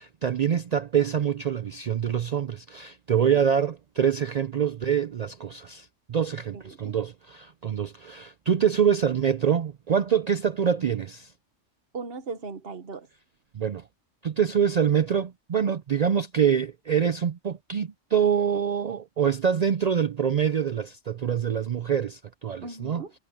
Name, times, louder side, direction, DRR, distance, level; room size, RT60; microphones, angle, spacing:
voice 1, 0.0-11.3 13.5-13.8 14.2-23.0, right 8 dB, 70° right, 0.3 m, -25 dB
voice 2, 6.5-6.9 11.9-13.1 22.6-23.1, right 4 dB, 50° right, 1.3 m, -38 dB
omnidirectional pair, 1.3 m